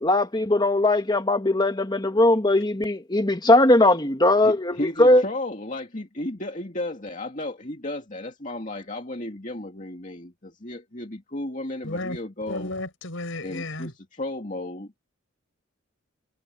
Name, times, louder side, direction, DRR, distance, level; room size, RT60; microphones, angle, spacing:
voice 1, 0.0-5.2, left 1 dB, 20° left, 1.9 m, -19 dB
voice 2, 4.4-12.7 13.4-14.9, left 1 dB, 35° left, 2.4 m, -34 dB
voice 3, 11.8-12.2 12.5-13.9, left 2 dB, 70° left, 5.9 m, -33 dB
head